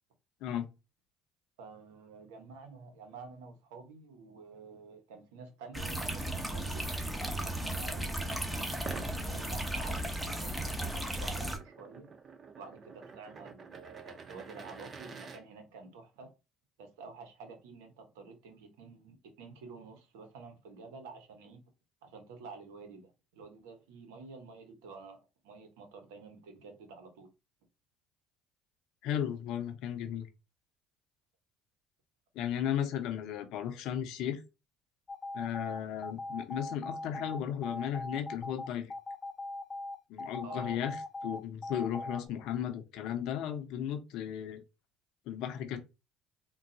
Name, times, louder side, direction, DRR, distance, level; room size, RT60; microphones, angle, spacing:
voice 1, 1.6-6.9 7.4-12.1 12.6-16.3 16.8-21.6 22.0-25.2 25.4-27.3 40.4-40.8, right 4 dB, 80° right, 0.9 m, -50 dB
sound 1, 5.7-11.6, right 1 dB, 5° right, 0.8 m, -35 dB
sound 2, 8.7-15.4, right 5 dB, 40° right, 0.6 m, -49 dB
voice 2, 29.0-30.3 32.4-34.4 35.3-38.9 40.1-41.0 41.2-44.6 45.3-45.8, left 9 dB, 70° left, 0.6 m, -35 dB
sound 3, 35.1-42.3, left 2 dB, 25° left, 0.5 m, -40 dB
3.8 x 2.3 x 2.6 m
hypercardioid pair, 70°, 0 cm